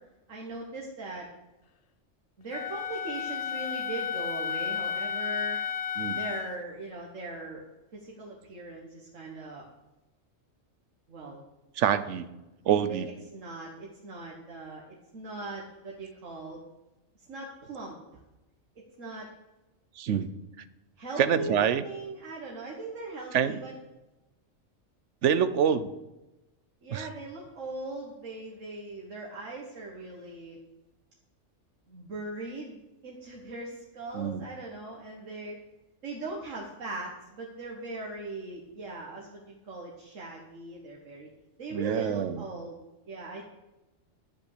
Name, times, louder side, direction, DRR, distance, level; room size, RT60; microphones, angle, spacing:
voice 1, 0.3-1.3 2.4-5.6 6.1-7.6 7.9-9.7 11.1-11.4 12.7-16.6 17.3-18.0 18.8-19.3 21.0-23.7 26.8-30.6 31.9-35.6 36.0-41.3 41.6-42.8 43.1-43.4, right 2 dB, 90° right, -3 dB, 1.8 m, -40 dB
Wind instrument woodwind instrument, 2.5-6.6, left 7 dB, 60° left, 0.4 m, -32 dB
voice 2, 11.8-12.3 12.7-13.1 20.0-20.3 21.2-21.8 23.3-23.6 25.2-25.9 26.9-27.1 34.1-34.5 41.7-42.4, right 8 dB, 75° right, 14 dB, 1.0 m, -26 dB
11.5 x 8.2 x 6.6 m, 1.0 s
omnidirectional pair, 1.3 m